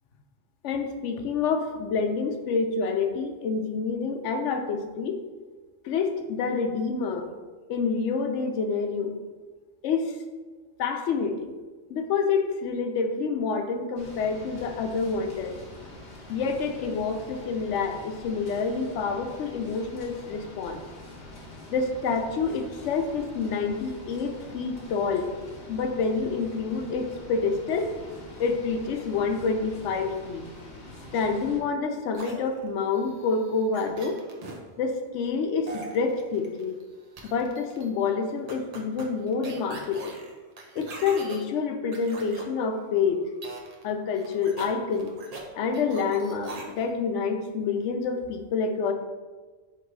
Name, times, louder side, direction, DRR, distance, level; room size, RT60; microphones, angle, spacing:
voice 1, 0.6-5.2 5.8-7.3 7.7-9.1 9.8-10.1 10.8-11.5 11.9-15.6 16.3-20.8 21.7-25.3 25.7-28.0 28.4-30.4 31.1-34.2 34.8-36.8 37.2-40.2 40.8-43.3 43.8-45.1 45.5-48.9, left 5 dB, 85° left, 6 dB, 0.9 m, -28 dB
sound 1, 14.0-31.6, left 1 dB, 70° left, 1.2 m, -45 dB
sound 2, 32.1-34.6 35.7-36.8 37.2-37.9 38.5-41.4 41.9-42.4 43.4-43.9 44.2-45.4 45.7-46.9, right 2 dB, 45° right, 0.6 m, -42 dB
3.8 x 3.0 x 4.5 m, 1.3 s
omnidirectional pair, 1.2 m